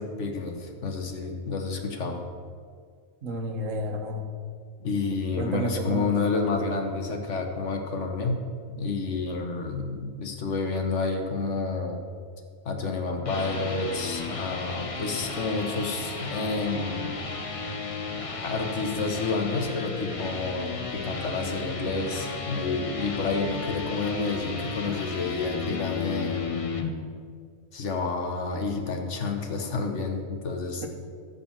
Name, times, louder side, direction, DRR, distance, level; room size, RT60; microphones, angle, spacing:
voice 1, 0.0-2.2 4.8-8.4 8.7-12.0 12.6-17.1 18.4-26.7 27.7-30.8, left 4 dB, 55° left, 4 dB, 1.4 m, -29 dB
voice 2, 3.2-4.3 5.4-6.1, right 1 dB, 60° right, 5 dB, 1.4 m, -31 dB
sound 1, 13.1-26.9, left 4 dB, 35° left, 0.6 m, -34 dB
11.5 x 5.6 x 7.5 m, 2.1 s
omnidirectional pair, 1.6 m